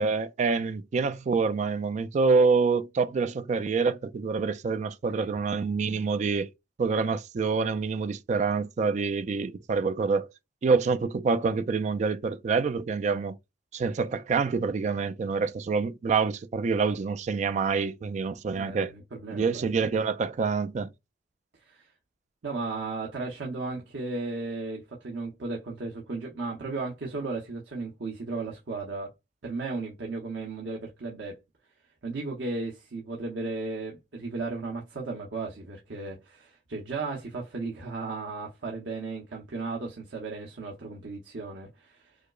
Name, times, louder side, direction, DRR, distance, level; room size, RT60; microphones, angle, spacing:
voice 1, 0.0-6.5 6.8-10.3 10.6-13.3 13.7-18.9 19.3-20.9, right 4 dB, 40° right, 0.3 m, -26 dB
voice 2, 18.6-19.7 21.7-21.9 22.4-29.1 29.4-31.4 32.0-42.1, right 3 dB, 90° right, 0.8 m, -35 dB
4.8 x 2.0 x 2.3 m
head